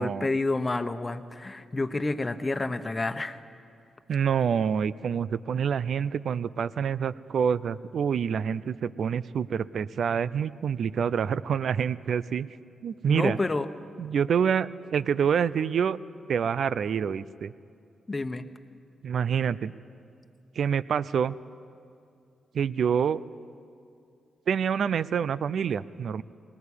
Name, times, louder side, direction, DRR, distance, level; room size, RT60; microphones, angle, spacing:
voice 1, 0.0-3.4 13.1-13.7 18.1-18.5, left 2 dB, 30° left, 9 dB, 1.1 m, -29 dB
voice 2, 4.1-12.5 12.8-13.4 14.0-16.0 16.3-17.5 19.0-19.7 20.6-21.4 22.5-23.2 24.5-26.2, right 7 dB, 65° right, 17 dB, 0.5 m, -27 dB
20.0 x 19.5 x 8.5 m, 2.4 s
supercardioid pair, 55°, 0 cm